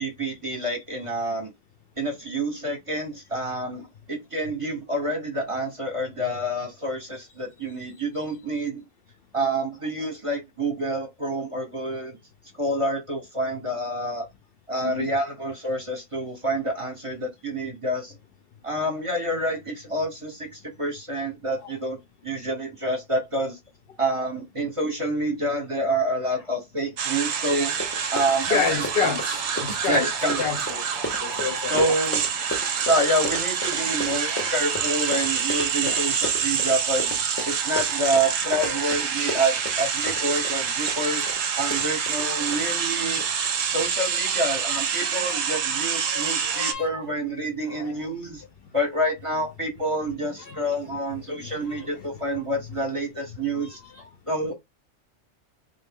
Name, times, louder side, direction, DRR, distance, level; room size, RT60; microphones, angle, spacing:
voice 1, 0.0-1.5 2.0-8.8 9.3-12.2 12.6-14.3 14.7-18.2 18.6-23.6 24.0-27.8 28.1-29.1 29.9-30.5 31.7-32.3 32.8-37.2 37.5-41.3 41.6-43.2 43.7-48.4 48.7-53.8 54.3-54.5, right 1 dB, 30° right, 0.9 m, -28 dB
sound 1, 27.0-46.7, right 7 dB, 70° right, 0.9 m, -27 dB
Run, 27.4-27.5 27.6-42.6 43.2-43.5 43.8-43.9, left 2 dB, 15° left, 0.5 m, -35 dB
voice 2, 28.5-30.8 31.2-32.0 33.7-34.7 35.0-35.1 35.8-36.2 38.5-38.8 39.3-39.5 41.2-41.3 42.1-42.5 44.2-44.3 45.4-45.5 46.0-47.0 47.6-47.9 50.4-52.8 53.5-54.1 54.5-54.6, left 5 dB, 60° left, 0.7 m, -32 dB
3.3 x 2.3 x 3.5 m
omnidirectional pair, 1.3 m